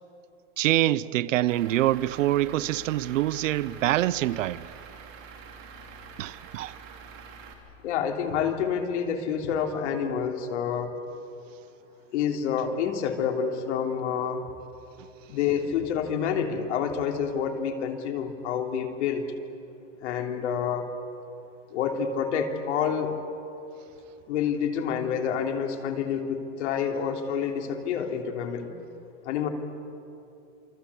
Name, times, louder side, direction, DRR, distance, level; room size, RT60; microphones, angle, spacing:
voice 1, 0.6-4.7 6.2-6.7, right 14 dB, 75° right, 0.8 m, -25 dB
Truck / Idling, 1.5-7.5, right 6 dB, 30° right, 3.3 m, -46 dB
voice 2, 7.8-10.9 12.1-14.5 15.3-19.3 20.0-20.9 21.7-23.2 24.3-28.7 29.2-29.5, left 7 dB, 60° left, 3.2 m, -28 dB
28.5 x 24.5 x 8.4 m
supercardioid pair, 170°, 38 cm